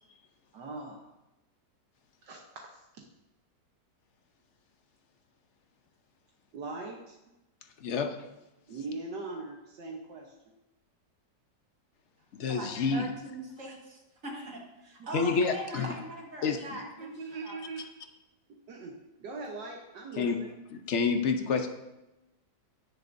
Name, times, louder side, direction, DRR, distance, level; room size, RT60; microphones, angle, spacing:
voice 1, 0.5-1.1 2.2-2.4 2.7-2.8 6.5-7.2 8.7-10.5 15.0-15.1 15.9-16.2 16.8-17.9 18.5-20.5, right 3 dB, 75° right, 0 dB, 1.7 m, -41 dB
voice 2, 7.8-8.2 12.3-13.1 15.1-15.9 16.4-16.6 20.2-20.4 20.7-21.7, left 5 dB, 50° left, 6 dB, 0.9 m, -28 dB
voice 3, 12.5-17.6, right 1 dB, 50° right, -1 dB, 2.1 m, -42 dB
17.0 x 6.7 x 2.7 m, 0.98 s
omnidirectional pair, 1.9 m